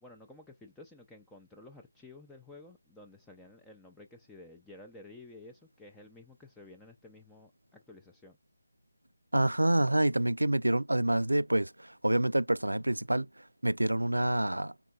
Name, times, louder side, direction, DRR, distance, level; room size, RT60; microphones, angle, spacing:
voice 1, 0.0-8.4, left 2 dB, 5° left, 0.4 m, -52 dB
voice 2, 9.3-13.3 13.6-14.7, right 1 dB, 90° right, 0.3 m, -27 dB
4.2 x 3.7 x 2.2 m
figure-of-eight pair, 155°, 0 cm